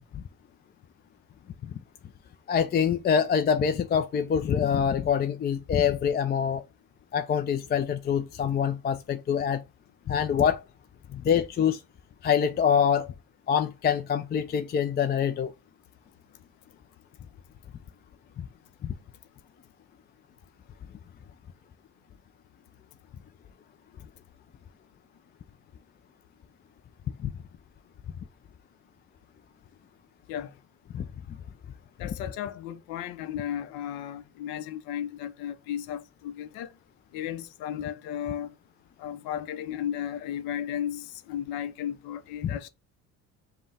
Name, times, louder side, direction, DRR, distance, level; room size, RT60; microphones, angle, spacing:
voice 1, 2.5-6.6 7.1-9.6 10.1-10.6 11.1-11.8 12.2-13.1 13.5-15.5 18.4-18.5 18.8-18.9 27.2-27.3 30.9-31.1 32.0-32.1 42.4-42.6, left 7 dB, 25° left, 0.4 m, -25 dB
voice 2, 32.0-36.7 37.1-38.5 39.0-42.7, left 10 dB, 70° left, 0.7 m, -34 dB
5.3 x 2.3 x 3.3 m
supercardioid pair, 75°, 37 cm